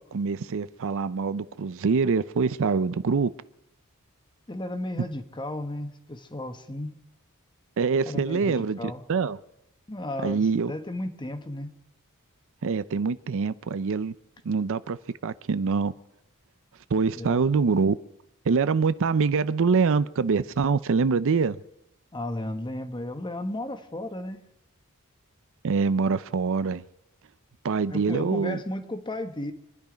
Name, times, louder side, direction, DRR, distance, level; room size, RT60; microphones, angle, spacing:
voice 1, 0.1-3.3 7.8-9.4 10.2-10.7 12.6-14.1 14.4-15.9 16.9-18.0 18.5-21.6 25.6-26.8 27.6-28.6, right 5 dB, 60° right, 16 dB, 0.5 m, -25 dB
voice 2, 4.5-7.0 8.1-9.0 9.9-11.7 17.2-17.4 22.1-24.4 27.9-29.5, left 1 dB, 20° left, 8 dB, 1.2 m, -34 dB
26.0 x 10.5 x 5.1 m, 0.81 s
head